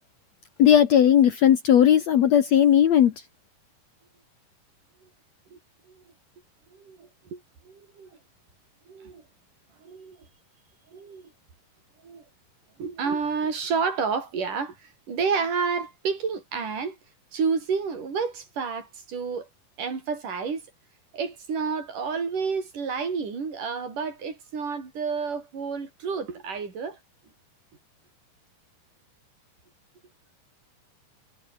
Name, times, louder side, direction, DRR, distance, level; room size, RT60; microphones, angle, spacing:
voice 1, 0.6-3.1, left 10 dB, 75° left, 1.6 m, -17 dB
voice 2, 6.7-8.2 8.9-9.2 9.8-10.3 10.9-11.3 12.0-12.3 12.8-17.0 17.3-19.5 19.8-20.6 21.1-27.0, right 5 dB, 45° right, 7.2 m, -30 dB
omnidirectional pair, 5.0 m